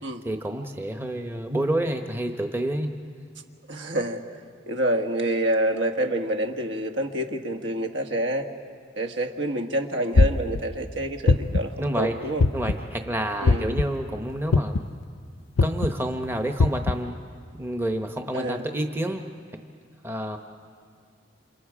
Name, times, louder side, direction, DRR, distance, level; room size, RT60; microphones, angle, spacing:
voice 1, 0.2-2.9 11.8-12.2 12.5-14.8 15.6-17.1 17.6-19.3 20.0-20.4, right 1 dB, 10° right, 5 dB, 0.9 m, -28 dB
voice 2, 3.7-4.2 4.7-8.5 9.0-12.4 13.4-13.8 18.3-18.6, right 1 dB, 70° right, 4 dB, 1.6 m, -27 dB
sound 1, 10.2-10.6 11.3-11.7 12.4-12.8 13.5-13.8 14.5-14.9 15.6-15.9 16.6-16.9, left 3 dB, 90° left, 0.6 m, -19 dB
29.0 x 27.5 x 4.9 m, 2.3 s
head